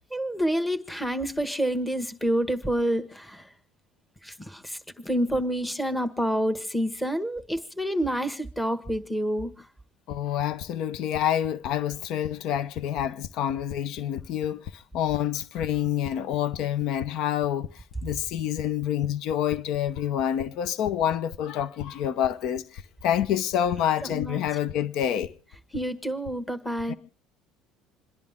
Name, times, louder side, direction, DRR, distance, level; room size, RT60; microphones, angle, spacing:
voice 1, 0.1-3.5 4.2-9.5 24.0-24.4 25.7-26.9, equal, 5° left, 1.5 m, -28 dB
voice 2, 10.1-25.3 26.9-27.0, left 10 dB, 65° left, 0.8 m, -27 dB
27.5 x 10.5 x 3.7 m
supercardioid pair, 100°, 0 cm